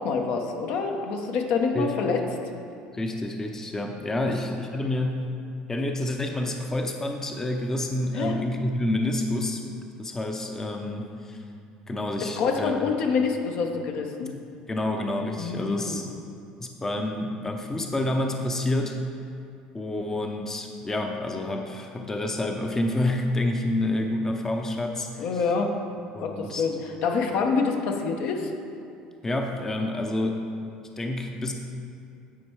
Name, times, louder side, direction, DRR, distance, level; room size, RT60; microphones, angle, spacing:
voice 1, 0.0-2.2 4.2-4.3 8.1-8.4 12.2-14.3 15.4-16.0 25.2-25.7 26.2-26.7 27.0-28.5, left 5 dB, 65° left, 3 dB, 0.9 m, -26 dB
voice 2, 2.9-5.2 5.7-9.6 10.0-11.4 11.9-12.8 14.7-16.1 16.6-19.0 19.7-25.4 26.1-26.6 29.2-30.5 31.0-31.5, left 1 dB, 15° left, 3 dB, 0.6 m, -28 dB
9.8 x 4.4 x 4.6 m, 2.5 s
supercardioid pair, 100°, 3 cm